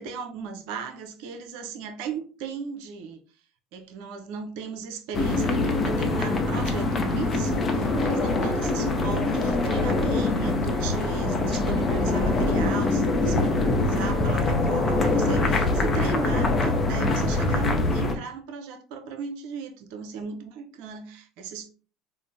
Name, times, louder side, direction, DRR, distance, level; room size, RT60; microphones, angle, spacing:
voice 1, 0.0-3.2 3.7-21.7, right 5 dB, 70° right, 0.5 m, -36 dB
sound 1, 5.1-18.2, left 2 dB, 35° left, 0.6 m, -24 dB
3.7 x 2.1 x 2.5 m
hypercardioid pair, 85°, 0 cm